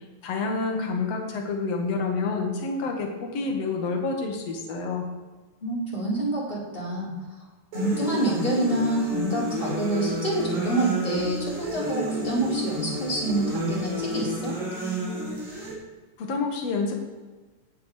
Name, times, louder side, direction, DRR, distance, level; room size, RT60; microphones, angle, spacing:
voice 1, 0.2-5.0 16.2-17.0, left 4 dB, 65° left, 1 dB, 1.6 m, -28 dB
voice 2, 5.6-7.1 7.7-14.6, right 1 dB, 10° left, -5 dB, 3.8 m, -27 dB
sound 1, 7.7-15.7, equal, 40° right, 5.2 m, -30 dB
18.0 x 10.5 x 3.4 m, 1.3 s
omnidirectional pair, 5.7 m